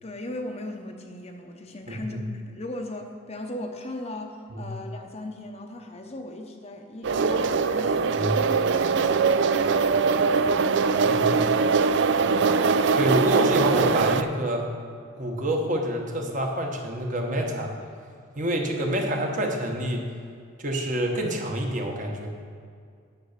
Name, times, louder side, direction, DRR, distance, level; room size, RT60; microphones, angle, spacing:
voice 1, 0.0-9.8 10.2-12.3, left 1 dB, 30° left, 3 dB, 0.8 m, -38 dB
voice 2, 1.9-2.2 4.5-4.7 8.1-8.4 11.0-11.4 12.9-14.6 15.1-17.7 18.4-20.0 20.6-22.3, right 1 dB, 40° right, 1 dB, 1.2 m, -27 dB
sound 1, 7.0-14.2, right 5 dB, 55° right, 0.4 m, -22 dB
9.3 x 6.7 x 6.7 m, 2.2 s
head